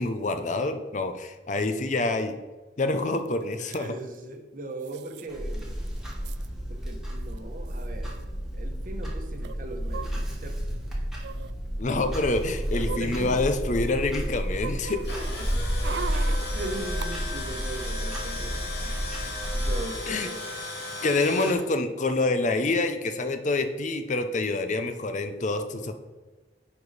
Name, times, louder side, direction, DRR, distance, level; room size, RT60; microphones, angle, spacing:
voice 1, 0.0-2.3 2.8-3.9 11.8-15.0 20.1-20.3 21.0-26.0, left 2 dB, 45° left, 8 dB, 0.6 m, -27 dB
sound 1, 3.3-3.4 3.5-3.8 4.8-5.3 5.6-5.7 5.9-6.5 7.3-7.4 7.7-7.9 9.4-10.6 11.2-11.5 12.2-13.8 14.2-17.1 17.4-17.5, right 7 dB, 70° right, 0.3 m, -40 dB
voice 2, 3.6-5.8 6.7-8.2 8.5-10.6 12.5-13.4 14.1-14.2 15.2-15.5 16.1-19.1 19.5-20.4 21.4-21.5, right 2 dB, 50° right, 4 dB, 1.1 m, -39 dB
Clock, 5.3-19.8, equal, 5° right, 1.5 m, -31 dB
Tools, 14.8-21.5, left 2 dB, 70° left, 2.1 m, -36 dB
9.9 x 4.7 x 4.1 m, 1.3 s
head